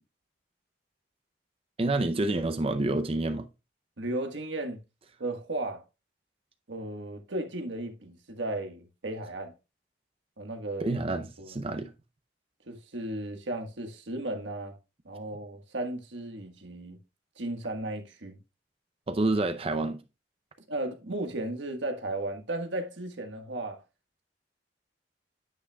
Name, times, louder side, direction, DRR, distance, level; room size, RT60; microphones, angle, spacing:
voice 1, 1.8-3.5 10.8-11.9 19.1-20.0, right 2 dB, 30° right, 0.6 m, -28 dB
voice 2, 4.0-4.8 5.2-5.8 6.7-9.5 10.4-11.0 11.4-11.6 12.7-14.8 15.0-17.0 17.4-18.4 20.7-23.8, right 1 dB, 90° right, 1.4 m, -35 dB
9.6 x 6.0 x 2.3 m
head